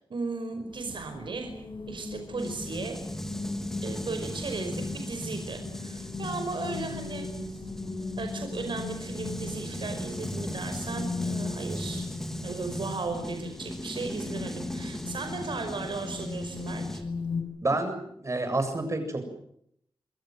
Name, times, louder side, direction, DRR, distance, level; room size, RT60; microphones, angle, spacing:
voice 1, 0.1-1.5 1.8-3.0 3.8-7.3 8.2-12.1 12.4-17.0, right 3 dB, 65° right, 5 dB, 5.3 m, -36 dB
sound 1, 0.7-17.4, left 4 dB, 70° left, 5.7 m, -38 dB
sound 2, 2.4-17.0, equal, 5° left, 3.6 m, -38 dB
voice 2, 17.6-19.3, right 2 dB, 35° right, 7 dB, 7.4 m, -29 dB
28.0 x 22.5 x 7.7 m, 0.72 s
wide cardioid pair, 110°, 9 cm